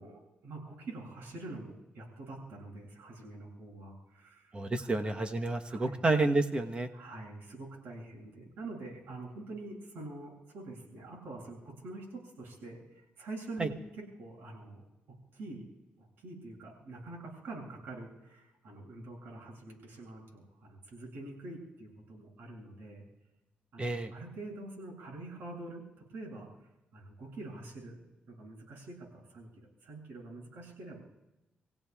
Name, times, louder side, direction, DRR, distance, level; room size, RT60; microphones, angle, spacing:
voice 1, 0.0-4.9 5.7-5.9 6.9-14.8 15.3-15.6 16.0-23.0 23.7-25.8 26.1-28.0 28.3-29.5 29.8-31.0, right 2 dB, 70° right, -2 dB, 7.4 m, -46 dB
voice 2, 4.5-6.9 13.6-13.7 23.8-24.1, right 2 dB, 25° right, 6 dB, 1.1 m, -30 dB
29.5 x 16.5 x 2.4 m, 0.94 s
cardioid pair, 95°, 4 cm